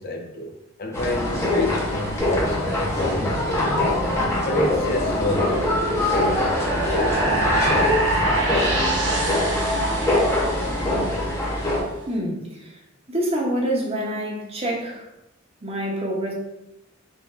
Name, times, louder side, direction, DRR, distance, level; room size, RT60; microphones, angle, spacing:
voice 1, 0.0-5.8, left 1 dB, 50° left, 2 dB, 0.5 m, -29 dB
sound 1, 0.9-11.8, left 1 dB, 15° left, 0.7 m, -23 dB
sound 2, 2.2-11.5, right 1 dB, 65° right, 1.0 m, -27 dB
voice 2, 12.1-12.8 13.1-15.1 15.6-16.3, right 1 dB, 30° right, -1 dB, 0.7 m, -26 dB
5.2 x 2.5 x 2.4 m, 0.91 s
head